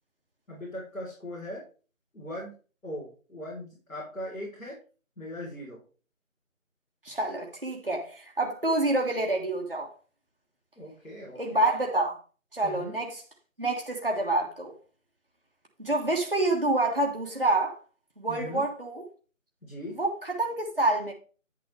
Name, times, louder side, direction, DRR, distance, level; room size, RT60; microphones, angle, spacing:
voice 1, 0.5-1.6 2.1-2.5 2.8-4.8 5.2-5.8 10.8-11.7 12.6-13.0 18.3-18.6 19.6-20.0, left 1 dB, 80° left, 4.1 m, -39 dB
voice 2, 7.0-9.9 11.3-12.2 12.5-13.2 13.6-14.7 15.8-17.7 18.2-19.0 20.0-21.1, right 2 dB, 40° right, 1.3 m, -27 dB
9.6 x 6.6 x 3.3 m
figure-of-eight pair, 180°, 41 cm